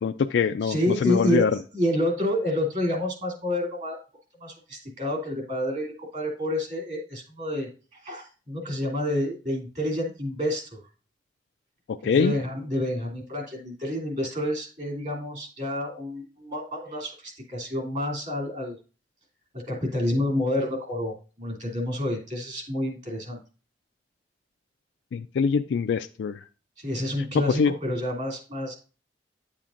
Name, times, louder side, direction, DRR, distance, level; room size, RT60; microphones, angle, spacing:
voice 1, 0.0-1.5 11.9-12.3 25.1-26.4 27.5-27.7, left 6 dB, 80° left, 8 dB, 0.3 m, -24 dB
voice 2, 0.6-4.0 4.4-10.8 12.0-18.8 19.5-23.4 26.8-28.7, left 1 dB, 45° right, 2 dB, 2.8 m, -29 dB
9.9 x 7.2 x 2.5 m, 0.36 s
head